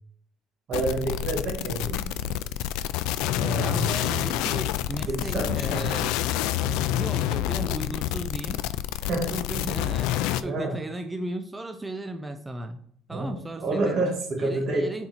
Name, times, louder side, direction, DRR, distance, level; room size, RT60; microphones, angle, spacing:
sound 1, 0.7-10.4, left 13 dB, 85° left, 0.3 m, -28 dB
voice 1, 0.7-2.0 3.3-3.9 5.0-5.9 6.6-6.8 9.1-9.3 10.4-10.8 13.1-14.9, right 2 dB, 35° right, -1 dB, 1.6 m, -28 dB
voice 2, 3.6-6.2 6.9-8.6 9.3-12.8 13.1-14.0 14.4-15.1, right 1 dB, 10° right, 6 dB, 0.3 m, -35 dB
6.6 x 4.3 x 4.0 m, 0.64 s
cardioid pair, 180°, 0 cm